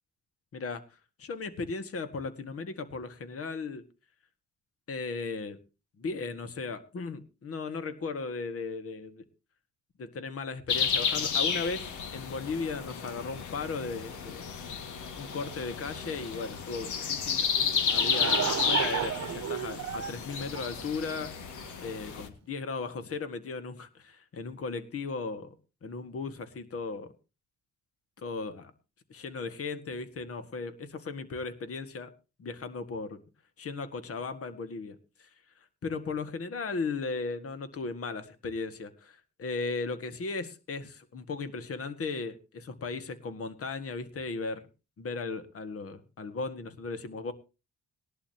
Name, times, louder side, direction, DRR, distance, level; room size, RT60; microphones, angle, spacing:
voice 1, 0.5-0.8 1.2-3.9 4.9-5.6 6.0-9.3 10.0-14.5 15.2-17.5 17.9-21.3 21.8-25.5 25.8-27.1 28.2-28.7 29.1-32.1 32.4-33.1 33.6-35.3 35.8-44.6 45.0-47.3, left 4 dB, 50° left, 10 dB, 1.9 m, -36 dB
sound 1, 10.7-22.3, left 6 dB, 75° left, 2.0 m, -32 dB
Laughter / Crowd, 17.6-21.3, right 9 dB, 60° right, 1.1 m, -33 dB
19.5 x 11.5 x 2.9 m, 0.29 s
cardioid pair, 90°, 30 cm